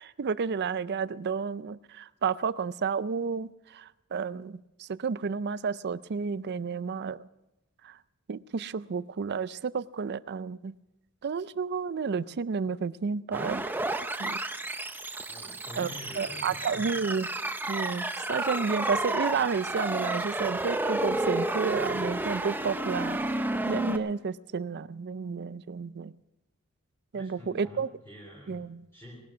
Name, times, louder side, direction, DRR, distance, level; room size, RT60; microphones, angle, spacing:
voice 1, 0.0-7.3 7.8-8.0 8.3-10.7 11.2-13.6 14.2-14.4 15.8-15.9 16.2-17.3 17.7-23.2 23.7-26.1 27.1-27.9 28.5-28.8, right 5 dB, 50° right, 17 dB, 0.4 m, -31 dB
sound 1, 13.3-24.0, right 2 dB, 10° right, 0.7 m, -31 dB
voice 2, 15.3-16.9 27.1-28.7 28.9-29.3, left 1 dB, 10° left, -3 dB, 3.3 m, -46 dB
19.0 x 11.5 x 6.1 m, 0.96 s
head